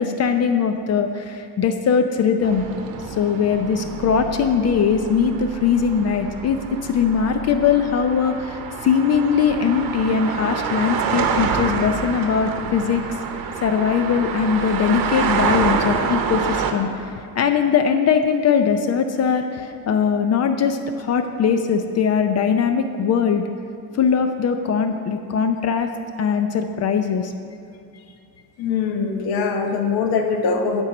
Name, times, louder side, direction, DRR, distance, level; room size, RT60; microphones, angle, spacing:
voice 1, 0.0-2.6 3.2-13.0 13.6-23.4 24.0-25.9 26.2-27.3, left 6 dB, 45° left, 7 dB, 0.5 m, -20 dB
sound 1, 2.4-16.7, right 6 dB, 70° right, 0.9 m, -27 dB
voice 2, 28.6-30.8, left 5 dB, 80° left, 4 dB, 1.0 m, -22 dB
11.5 x 4.6 x 6.0 m, 2.6 s
cardioid pair, 150°, 36 cm